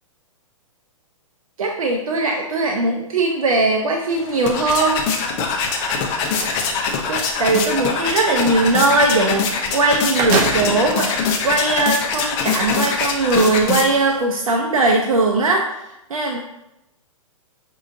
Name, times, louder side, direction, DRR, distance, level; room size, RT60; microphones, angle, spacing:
voice 1, 1.6-5.0 7.1-11.1 11.4-16.4, right 2 dB, 80° right, 1 dB, 0.6 m, -19 dB
sound 1, 4.1-14.2, left 5 dB, 35° left, 0.7 m, -23 dB
sound 2, 5.6-6.6 9.4-9.5 9.9-10.9 11.6-11.7 12.7-12.9, right 3 dB, 40° right, 0.7 m, -24 dB
6.0 x 2.8 x 2.6 m, 0.88 s
hypercardioid pair, 125°, 18 cm